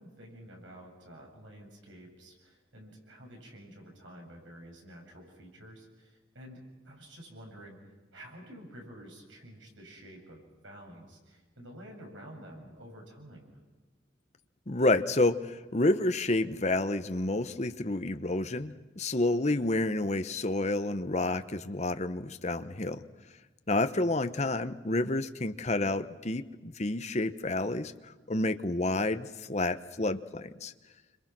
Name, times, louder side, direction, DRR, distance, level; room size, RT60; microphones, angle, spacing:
voice 1, 0.0-7.8 8.1-13.6 24.0-24.1, equal, 80° right, 1 dB, 7.6 m, -50 dB
voice 2, 14.7-23.0 23.7-27.9 28.3-30.7, left 2 dB, 35° left, 9 dB, 1.0 m, -29 dB
29.0 x 26.5 x 6.1 m, 1.3 s
head